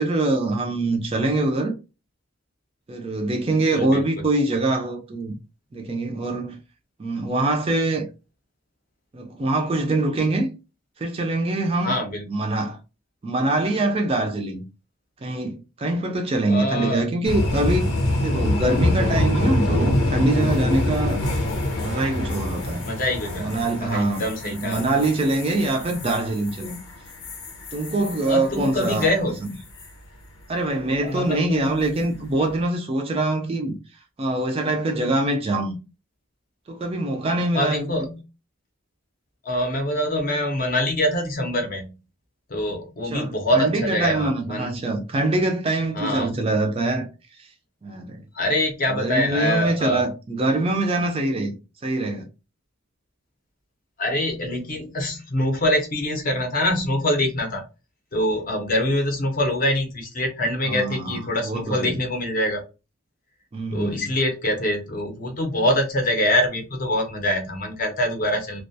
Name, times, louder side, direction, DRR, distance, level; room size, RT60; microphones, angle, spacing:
voice 1, 0.0-1.8 2.9-5.3 5.7-6.6 7.0-8.1 9.1-10.5 11.0-12.0 12.3-12.8 13.2-14.6 15.2-17.9 18.2-21.2 21.8-22.8 23.4-26.8 27.7-29.1 29.4-29.6 30.5-33.8 34.2-35.8 36.7-38.1 43.0-47.1 47.4-47.5 47.8-48.2 48.9-51.6 51.8-52.2 60.6-62.0 63.5-64.1, right 2 dB, 25° right, 0.3 m, -24 dB
voice 2, 3.7-4.0 11.8-12.2 16.5-17.0 22.8-23.5 23.8-24.8 28.3-29.4 31.0-31.9 37.5-38.2 39.4-41.9 42.5-44.8 45.9-46.3 48.3-50.0 54.0-57.6 58.1-62.6 63.7-68.6, left 1 dB, 40° left, 0.6 m, -24 dB
sound 1, 17.2-29.1 29.4-29.9 31.8-32.1, left 1 dB, 90° left, 0.7 m, -25 dB
2.2 x 2.1 x 2.6 m
head